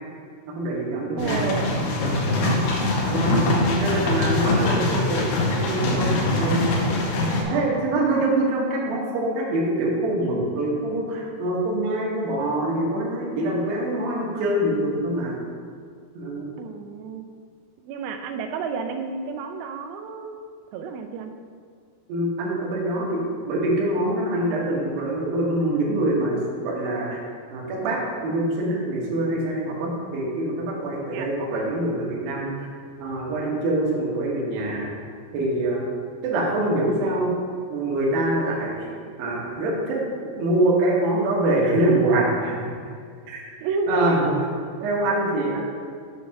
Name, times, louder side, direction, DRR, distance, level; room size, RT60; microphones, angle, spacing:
voice 1, 0.5-1.4 2.0-2.6 3.0-6.7 7.5-15.3 16.1-16.6 22.1-23.2 23.5-27.2 27.5-32.5 33.0-34.9 35.3-35.8 36.2-37.3 37.7-38.9 39.2-42.7 43.3-43.4 43.9-44.3 44.8-45.6, right 1 dB, 70° right, -4 dB, 2.2 m, -25 dB
sound 1, 1.2-7.4, left 2 dB, 85° left, 2.2 m, -23 dB
voice 2, 1.2-1.9 7.3-8.5 16.6-17.2 17.8-20.5 20.7-21.3 31.1-31.3 43.6-44.5, right 4 dB, 90° right, 6 dB, 3.2 m, -31 dB
7.9 x 3.2 x 5.6 m, 2.1 s
omnidirectional pair, 5.8 m